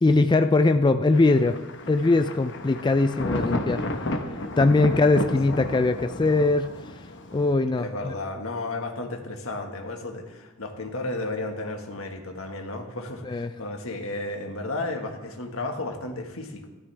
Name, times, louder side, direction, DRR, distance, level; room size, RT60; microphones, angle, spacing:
voice 1, 0.0-1.6 1.9-3.8 4.6-6.7 7.3-8.1 13.3-13.5, left 3 dB, 20° left, 9 dB, 0.3 m, -21 dB
Thunder, 1.1-7.5, left 1 dB, 60° left, 1.1 m, -32 dB
voice 2, 4.8-5.3 5.6-5.8 7.7-16.7, left 2 dB, 85° left, 4 dB, 1.6 m, -33 dB
15.5 x 12.5 x 3.4 m, 1.1 s
head